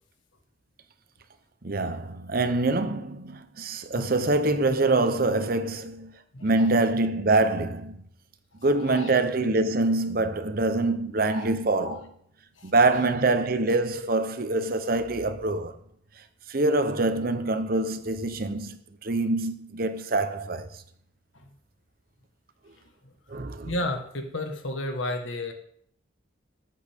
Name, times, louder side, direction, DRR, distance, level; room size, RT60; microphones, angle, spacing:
voice 1, 1.6-6.1 6.4-8.1 8.6-12.0 12.6-15.7 16.5-20.7 23.3-23.7, right 2 dB, 50° right, 0.8 m, -25 dB
voice 2, 8.8-9.2 11.3-11.5 11.8-12.0 12.6-13.0 23.6-25.5, left 1 dB, 90° left, 1.6 m, -32 dB
13.5 x 8.7 x 3.6 m
head